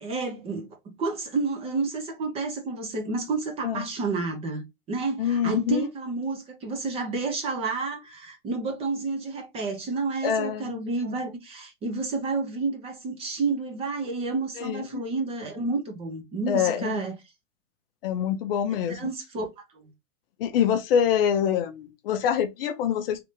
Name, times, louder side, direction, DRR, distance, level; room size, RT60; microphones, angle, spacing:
voice 1, 0.0-17.2 18.9-19.5 19.7-19.9, right 3 dB, 15° right, 0.5 m, -30 dB
voice 2, 5.2-5.9 10.2-10.8 14.6-14.9 16.5-17.0 18.0-19.0 20.4-23.2, left 8 dB, 45° left, 0.5 m, -25 dB
3.3 x 2.5 x 3.0 m
hypercardioid pair, 135°, 41 cm